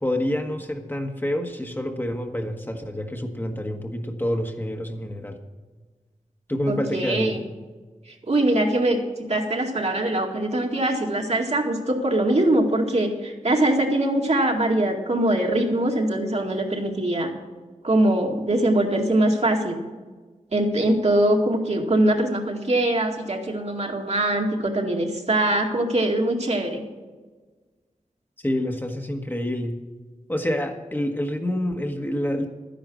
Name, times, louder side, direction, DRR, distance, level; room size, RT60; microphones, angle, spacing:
voice 1, 0.0-5.4 6.5-7.4 28.4-29.7 30.3-32.5, left 1 dB, 15° left, 4 dB, 1.3 m, -27 dB
voice 2, 6.7-7.4 8.3-9.0 9.3-17.3 17.8-19.8 20.5-26.8, right 1 dB, 55° right, 1 dB, 2.1 m, -22 dB
12.5 x 10.5 x 6.2 m, 1.3 s
wide cardioid pair, 70°, 13 cm